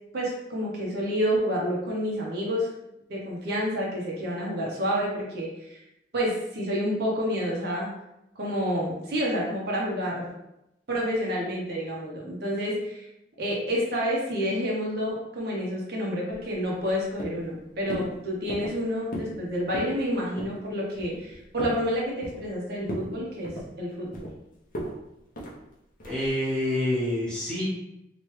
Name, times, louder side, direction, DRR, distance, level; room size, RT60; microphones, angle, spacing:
voice 1, 0.1-2.7 3.1-5.8 6.1-7.9 8.4-10.3 10.9-13.0 13.4-23.5 23.8-24.3, equal, 60° right, -3 dB, 0.7 m, -29 dB
sound 1, 16.3-16.9 17.2-17.5 17.9-18.1 18.5-18.8 19.1-19.4 19.6-20.0 20.4-20.6 21.0-21.8 22.2-22.6 22.9-23.1 23.4-24.3 24.7-25.0 25.4-25.6 26.0-26.3, equal, 50° left, 0.6 m, -36 dB
voice 2, 26.0-27.7, left 1 dB, 5° left, -8 dB, 1.1 m, -27 dB
3.0 x 2.3 x 3.1 m, 0.87 s
head